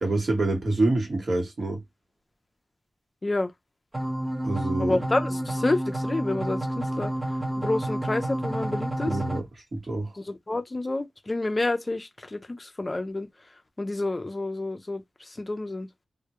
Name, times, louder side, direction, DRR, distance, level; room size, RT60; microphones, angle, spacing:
voice 1, 0.0-1.8 4.4-5.0 9.0-9.5 9.7-10.1, right 2 dB, 55° right, 1.0 m, -26 dB
sound 1, 3.9-9.4, right 1 dB, 25° right, 0.5 m, -30 dB
voice 2, 4.8-7.1 7.6-9.1 10.3-13.3 13.8-15.0 15.4-15.9, left 2 dB, 30° left, 0.4 m, -29 dB
2.1 x 2.0 x 2.8 m
wide cardioid pair, 75°, 0 cm